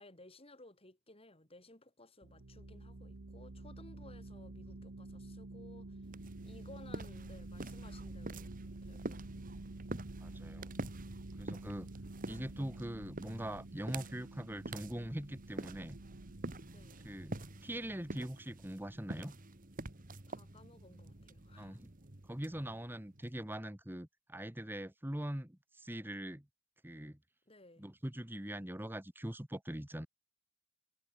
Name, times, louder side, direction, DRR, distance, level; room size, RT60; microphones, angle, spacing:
voice 1, 0.0-6.0 6.4-8.5 8.8-9.6 16.7-17.1 20.3-21.8 27.5-27.9, left 2 dB, 30° left, 5.4 m, -58 dB
sound 1, 2.2-18.5, right 2 dB, 70° right, 1.2 m, -49 dB
sound 2, 6.0-23.6, right 2 dB, 40° right, 1.7 m, -47 dB
voice 2, 10.2-10.7 11.4-11.9 12.3-16.0 17.0-17.4 17.6-19.3 21.5-21.9 22.3-26.4 26.8-27.2 27.8-30.1, right 1 dB, 10° right, 1.4 m, -42 dB
head